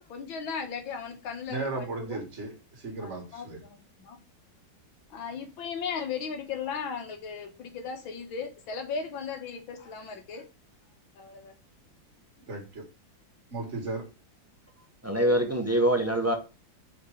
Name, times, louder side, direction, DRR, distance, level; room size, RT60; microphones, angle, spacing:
voice 1, 0.1-2.2 3.0-4.2 5.1-10.4 11.2-11.5, left 6 dB, 90° left, 2.0 m, -37 dB
voice 2, 1.5-3.6 12.5-12.8 13.5-14.0, right 3 dB, 35° right, 2.2 m, -35 dB
voice 3, 15.0-16.3, right 1 dB, 20° right, 0.4 m, -24 dB
5.0 x 4.3 x 4.9 m
omnidirectional pair, 2.1 m